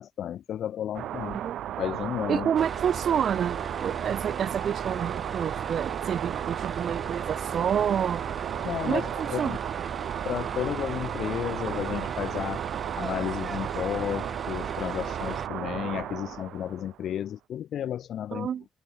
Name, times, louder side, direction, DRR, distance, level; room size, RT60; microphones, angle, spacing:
voice 1, 0.0-1.4 1.8-2.5 8.6-9.6 10.3-12.7 13.0-18.5, left 10 dB, 70° left, 1.7 m, -32 dB
sound 1, 0.9-17.0, right 12 dB, 80° right, 1.6 m, -34 dB
voice 2, 2.3-8.2 8.8-9.6 18.3-18.6, right 8 dB, 60° right, 0.6 m, -29 dB
sound 2, 2.6-15.5, right 4 dB, 30° right, 2.9 m, -37 dB
cardioid pair, 90°, 0 cm